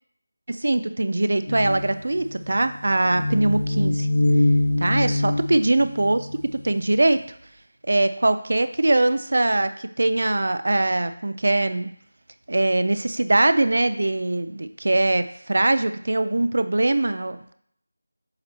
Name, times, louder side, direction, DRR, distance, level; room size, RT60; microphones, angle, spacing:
voice 1, 0.5-4.1 4.8-7.2 7.9-11.9 12.5-17.5, right 2 dB, 55° right, 11 dB, 0.4 m, -22 dB
sound 1, 1.5-6.7, left 1 dB, 75° left, 2.3 m, -24 dB
7.5 x 2.9 x 4.5 m, 0.64 s
figure-of-eight pair, 175°, 0 cm